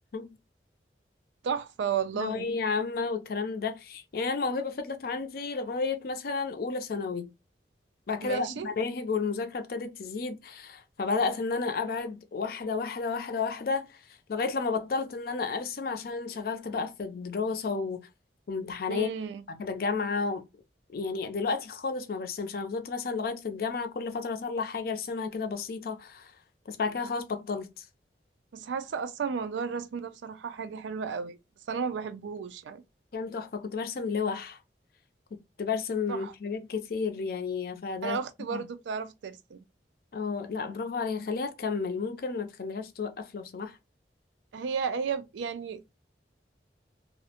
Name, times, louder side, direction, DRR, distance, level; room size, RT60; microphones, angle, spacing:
voice 1, 1.4-2.5 8.2-8.7 18.9-19.4 28.5-31.4 31.7-32.8 36.1-36.3 38.0-39.6 44.5-46.0, right 6 dB, 85° right, 0.3 m, -33 dB
voice 2, 2.1-7.3 8.1-14.0 14.3-18.0 18.5-19.1 19.6-20.4 20.9-26.3 26.7-27.9 33.1-34.6 35.3-38.2 38.5-38.6 40.1-43.8, left 4 dB, 55° left, 0.4 m, -32 dB
2.4 x 2.0 x 2.7 m
head